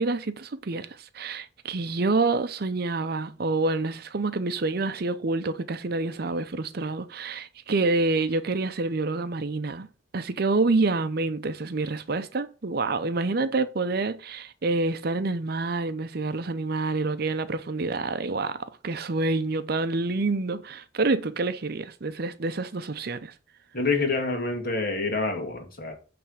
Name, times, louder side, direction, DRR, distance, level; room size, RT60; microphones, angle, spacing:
voice 1, 0.0-9.9 10.1-23.3, right 3 dB, 55° right, 0.6 m, -27 dB
voice 2, 23.7-25.9, left 3 dB, 50° left, 2.1 m, -27 dB
9.0 x 3.5 x 6.4 m
head